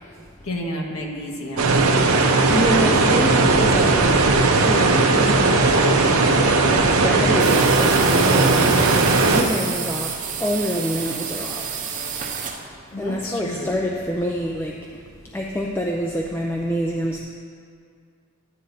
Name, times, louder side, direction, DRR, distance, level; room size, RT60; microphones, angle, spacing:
voice 1, 0.4-1.9 12.9-13.7, left 1 dB, 85° left, 0 dB, 1.3 m, -30 dB
sound 1, 1.6-9.4, right 3 dB, 80° right, 0.7 m, -17 dB
voice 2, 2.2-4.2 4.6-11.8 13.0-15.0 15.3-17.2, equal, 10° left, 0 dB, 0.3 m, -27 dB
sound 2, 7.4-12.7, right 7 dB, 35° right, 0.6 m, -29 dB
11.0 x 9.5 x 2.7 m, 2.3 s
head